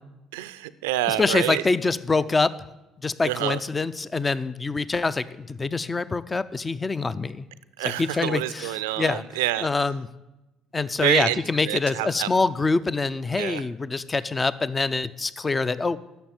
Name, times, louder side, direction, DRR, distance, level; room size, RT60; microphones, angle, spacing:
voice 1, 0.3-1.6 3.2-3.6 7.8-9.7 11.0-12.3 13.3-13.6, right 15 dB, 80° right, 15 dB, 0.5 m, -27 dB
voice 2, 1.1-2.5 3.0-7.5 7.8-9.2 9.6-10.1 10.7-16.0, left 3 dB, 25° left, 15 dB, 0.6 m, -25 dB
11.5 x 7.0 x 8.9 m, 0.98 s
hypercardioid pair, 60°, 0 cm